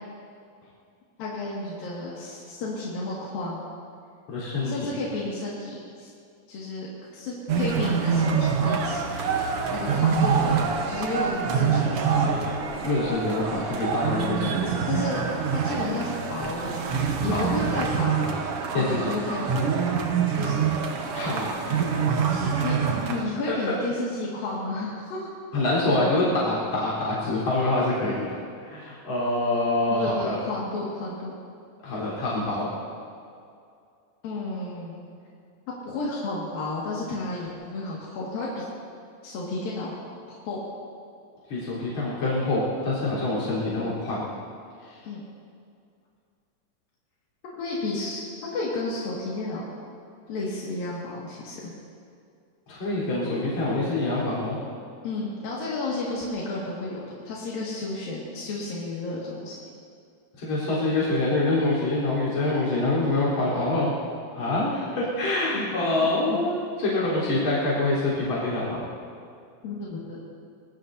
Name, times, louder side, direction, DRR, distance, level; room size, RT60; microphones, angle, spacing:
voice 1, 1.2-3.6 4.6-6.1 6.5-6.9 7.1-9.0 9.7-10.6 10.9-12.3 12.8-12.9 14.4-14.6 14.9-15.2 15.5-16.9 17.2-18.3 18.7-19.7 20.4-20.6 22.6-22.8 23.1-25.3 29.9-31.3 34.2-35.0 35.8-38.7 39.2-39.9 40.3-40.6 45.0-45.2 47.6-49.6 50.3-51.7 55.0-59.6 65.5-66.4 69.6-70.2, left 2 dB, 85° left, -6 dB, 3.9 m, -32 dB
voice 2, 4.3-4.7 12.8-14.7 17.3-17.7 18.7-19.1 21.1-22.5 25.5-28.3 28.6-30.4 31.8-32.7 41.5-44.2 44.9-45.0 52.7-54.6 60.4-63.9 64.3-68.8, left 2 dB, 50° left, -8 dB, 5.3 m, -26 dB
sound 1, 7.5-23.2, right 6 dB, 60° right, 1.6 m, -26 dB
25.5 x 20.0 x 2.8 m, 2.4 s
omnidirectional pair, 4.0 m